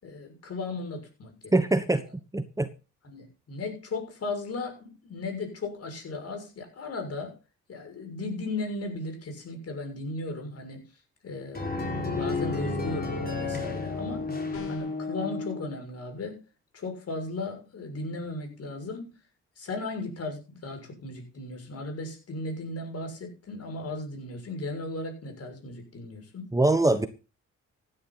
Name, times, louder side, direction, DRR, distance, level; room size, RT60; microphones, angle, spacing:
voice 1, 0.0-1.5 3.0-7.4 7.7-10.8 11.2-11.8 12.1-14.3 14.7-16.4 16.7-19.1 19.6-26.5, left 2 dB, 55° left, 4 dB, 6.6 m, -36 dB
voice 2, 1.5-2.0 2.3-2.7 26.5-27.1, right 2 dB, 10° right, 10 dB, 1.2 m, -23 dB
sound 1, 11.5-15.7, left 3 dB, 30° left, 5.0 m, -31 dB
sound 2, 14.5-15.1, left 8 dB, 85° left, 6.7 m, -42 dB
15.5 x 10.5 x 4.1 m, 0.32 s
cardioid pair, 90°, 30 cm